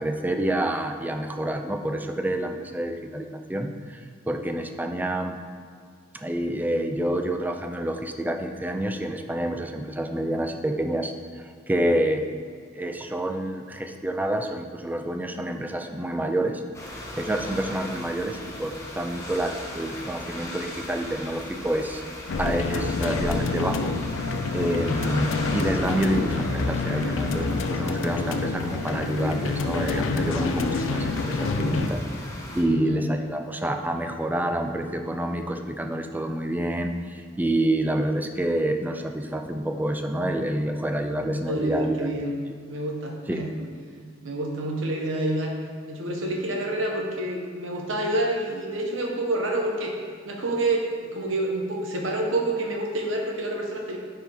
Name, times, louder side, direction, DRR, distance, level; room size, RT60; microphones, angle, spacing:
voice 1, 0.0-4.0 4.3-5.3 6.1-12.2 12.7-16.6 17.1-22.0 22.4-23.9 24.5-32.0 32.5-42.1 43.3-43.4, right 1 dB, 10° right, 5 dB, 0.4 m, -28 dB
sound 1, 16.7-32.6, left 1 dB, 15° left, 1.1 m, -37 dB
sound 2, 22.3-31.9, left 3 dB, 80° left, 0.4 m, -28 dB
voice 2, 32.7-33.0 41.5-42.3 42.7-43.7 44.2-45.5 45.9-49.9 50.2-54.0, right 1 dB, 90° right, 0 dB, 1.2 m, -28 dB
9.7 x 4.6 x 3.5 m, 2.1 s
head